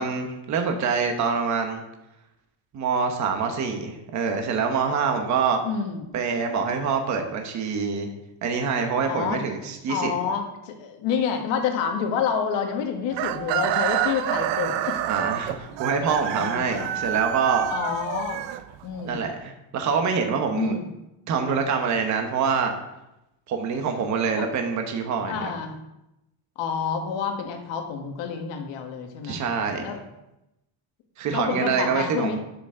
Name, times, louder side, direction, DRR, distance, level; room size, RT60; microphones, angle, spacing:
voice 1, 0.0-1.8 2.7-5.6 6.1-8.1 8.4-10.1 15.1-17.7 19.0-20.7 21.3-22.7 23.5-25.5 29.2-29.8 31.2-32.4, right 5 dB, 40° right, 4 dB, 1.1 m, -25 dB
voice 2, 5.6-6.0 9.1-9.4 9.9-15.1 16.3-17.0 17.7-18.4 18.8-19.2 20.5-20.9 24.4-24.5 25.3-25.8 26.5-29.4 29.8-30.0 31.3-32.4, left 6 dB, 75° left, 4 dB, 1.6 m, -28 dB
Chicken rooster, 13.1-19.1, right 11 dB, 70° right, 0.7 m, -28 dB
11.0 x 6.9 x 3.8 m, 0.90 s
cardioid pair, 175°, 45 cm